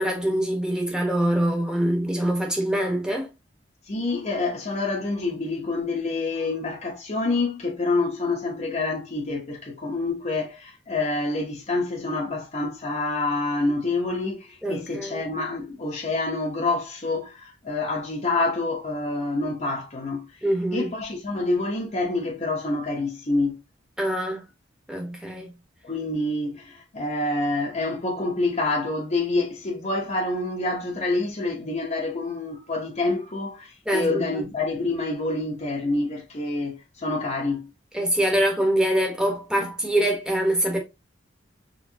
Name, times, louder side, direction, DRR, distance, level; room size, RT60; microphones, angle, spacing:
voice 1, 0.0-3.3 14.6-15.3 20.4-20.9 24.0-24.4 24.9-25.5 33.9-34.4 37.9-40.8, right 1 dB, 5° right, 1.2 m, -24 dB
voice 2, 3.9-20.3 20.7-23.6 25.8-37.7, left 2 dB, 40° left, 1.0 m, -27 dB
4.5 x 3.3 x 2.8 m
head